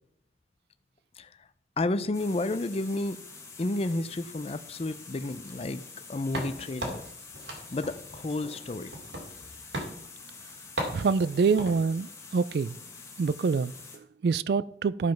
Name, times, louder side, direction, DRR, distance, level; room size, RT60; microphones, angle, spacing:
voice 1, 1.8-3.2 3.6-5.8 6.1-7.0 7.7-8.9, left 2 dB, 35° left, 0.5 m, -31 dB
sound 1, 2.1-14.0, left 4 dB, 15° left, 1.4 m, -47 dB
sound 2, 6.3-9.5 9.7-10.0 10.8-11.8, right 1 dB, 85° right, 2.5 m, -37 dB
voice 2, 10.9-12.8 13.2-15.1, right 5 dB, 60° right, 0.3 m, -26 dB
12.5 x 5.3 x 5.9 m
head